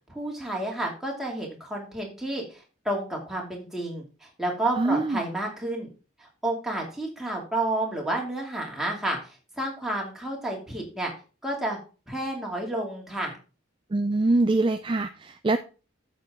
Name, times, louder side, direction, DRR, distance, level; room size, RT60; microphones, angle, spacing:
voice 1, 0.1-5.9 6.2-11.1 11.4-11.8 12.1-13.3, right 1 dB, ahead, -2 dB, 2.6 m, -31 dB
voice 2, 4.8-5.2 13.9-15.6, right 2 dB, 25° right, 9 dB, 0.4 m, -24 dB
9.2 x 7.1 x 3.7 m, 0.34 s
head